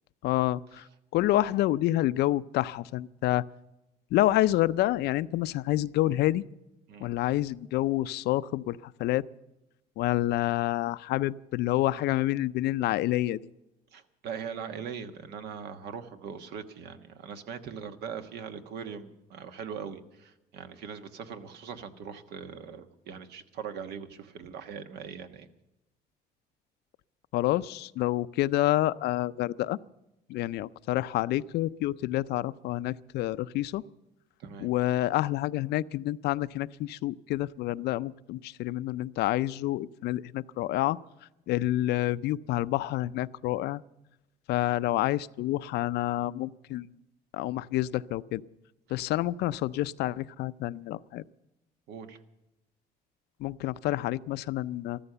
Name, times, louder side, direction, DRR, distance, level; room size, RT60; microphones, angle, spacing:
voice 1, 0.2-0.9 1.1-3.4 4.1-6.4 7.0-9.2 10.0-13.5 27.3-29.8 30.3-33.8 34.6-41.0 41.5-43.8 44.5-47.0 47.3-48.4 48.9-51.2 53.4-55.0, left 15 dB, 75° left, 16 dB, 0.5 m, -28 dB
voice 2, 13.9-25.5 34.4-34.7 51.9-52.2, right 7 dB, 75° right, 8 dB, 1.4 m, -41 dB
14.0 x 14.0 x 6.8 m, 0.95 s
cardioid pair, 110°, 17 cm